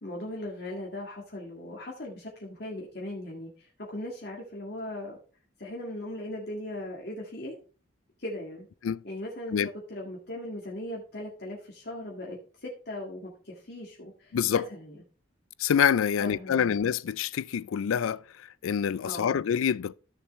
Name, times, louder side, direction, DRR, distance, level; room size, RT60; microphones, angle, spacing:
voice 1, 0.0-5.2 5.6-7.6 8.2-8.7 9.0-9.6 9.9-15.0 16.2-16.7 19.0-19.4, left 1 dB, 50° left, 1.7 m, -39 dB
voice 2, 14.3-14.6 15.6-19.9, left 8 dB, 85° left, 0.4 m, -26 dB
14.0 x 6.6 x 3.1 m
head